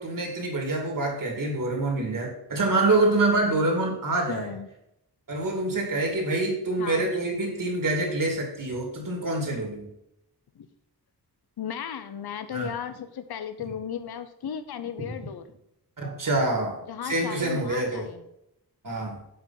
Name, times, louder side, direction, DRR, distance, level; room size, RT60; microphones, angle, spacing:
voice 1, 0.0-4.5 5.3-9.9 12.5-12.7 16.0-18.1 18.8-19.2, right 2 dB, 55° right, 1 dB, 2.6 m, -26 dB
voice 2, 4.3-4.7 6.8-7.1 10.6-10.7 11.6-15.4 16.9-18.2, left 8 dB, 70° left, 10 dB, 0.7 m, -35 dB
8.0 x 5.4 x 5.8 m, 0.82 s
wide cardioid pair, 135°, 40 cm